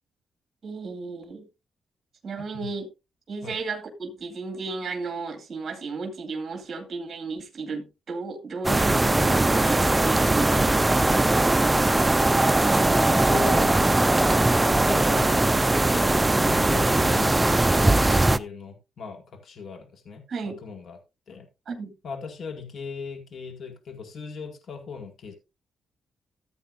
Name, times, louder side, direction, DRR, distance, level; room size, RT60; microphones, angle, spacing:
voice 1, 0.6-1.4 2.2-2.9 3.3-10.8 20.3-20.6 21.7-21.9, right 4 dB, 45° right, 2.2 m, -34 dB
sound 1, 8.6-18.4, right 2 dB, 15° right, 0.5 m, -20 dB
voice 2, 12.4-20.2 20.6-21.0 21.3-21.5 22.0-25.4, left 5 dB, 60° left, 2.1 m, -38 dB
14.5 x 8.2 x 2.6 m
cardioid pair, 115°, 0 cm